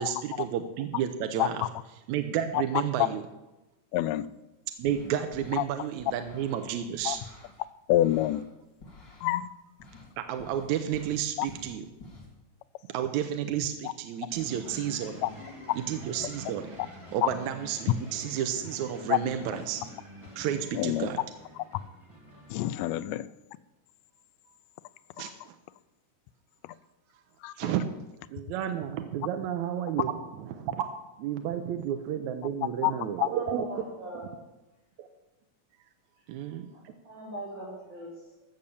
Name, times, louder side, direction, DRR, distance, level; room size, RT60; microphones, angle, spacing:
voice 1, 0.0-1.6 2.1-3.2 4.8-7.2 10.2-11.9 12.9-15.2 15.7-19.8 20.4-21.2 25.2-25.5 27.6-27.9 28.3-30.8 31.2-33.6 35.0-35.1 36.3-36.7, right 9 dB, 80° right, 7 dB, 2.1 m, -31 dB
voice 2, 3.9-4.3 5.6-5.7 7.0-7.2 7.9-8.4 9.2-9.5 11.4-11.5 15.2-15.3 17.2-17.3 19.1-19.2 20.7-21.1 22.5-23.3 25.2-25.3 27.4-27.5 32.8-32.9 33.2-33.3, left 15 dB, 80° left, 14 dB, 1.6 m, -26 dB
sound 1, 4.7-5.6 6.0-7.6 7.9-9.3 9.8-10.1 10.4-12.3, left 2 dB, 35° left, 3.1 m, -50 dB
sound 2, 14.3-22.9, equal, 10° right, 2.0 m, -47 dB
voice 3, 32.8-34.4 36.2-36.4 36.7-38.4, right 1 dB, 40° right, -7 dB, 3.4 m, -42 dB
15.5 x 6.4 x 7.1 m, 1.0 s
omnidirectional pair, 3.4 m